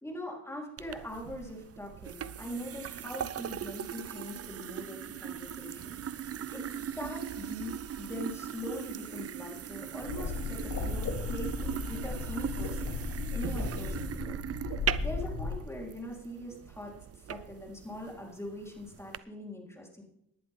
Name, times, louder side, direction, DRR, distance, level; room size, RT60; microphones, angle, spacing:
voice 1, 0.0-6.0 6.5-13.0 13.3-14.4 14.6-20.0, left 1 dB, 10° left, -1 dB, 4.1 m, -42 dB
sound 1, 0.8-19.2, right 9 dB, 45° right, 0.6 m, -39 dB
sound 2, 10.0-15.6, left 4 dB, 65° left, 3.2 m, -35 dB
18.5 x 10.5 x 3.7 m, 0.76 s
cardioid pair, 100°, 35 cm